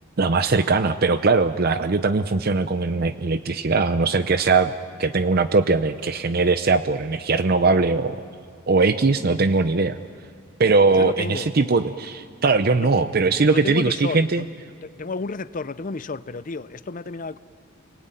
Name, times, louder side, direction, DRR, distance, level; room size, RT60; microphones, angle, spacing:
voice 1, 0.2-4.7 5.0-8.2 8.7-10.0 10.6-14.5, right 3 dB, 50° right, 0.6 m, -20 dB
voice 2, 10.9-11.5 12.7-12.9 13.5-14.4 14.8-17.4, left 3 dB, 40° left, 0.6 m, -31 dB
30.0 x 20.0 x 9.2 m
head